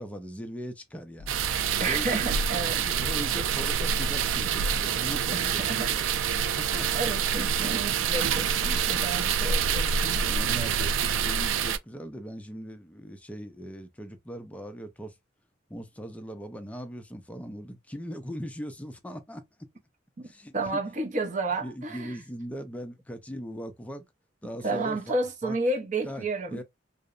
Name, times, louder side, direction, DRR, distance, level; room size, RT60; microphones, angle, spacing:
voice 1, 0.0-2.2 2.8-6.1 6.6-7.0 10.1-15.1 15.7-19.4 20.2-20.8 21.6-24.1 24.4-25.1 25.4-25.6 26.1-26.6, equal, 5° left, 0.3 m, -39 dB
sound 1, 1.2-8.0, left 2 dB, 80° left, 0.5 m, -42 dB
sound 2, 1.3-11.8, right 7 dB, 90° right, 0.3 m, -27 dB
voice 2, 1.8-2.8 5.3-5.9 6.9-10.2 20.2-20.3 20.5-22.2 24.6-26.6, right 2 dB, 40° right, 0.6 m, -31 dB
2.8 x 2.0 x 2.4 m
head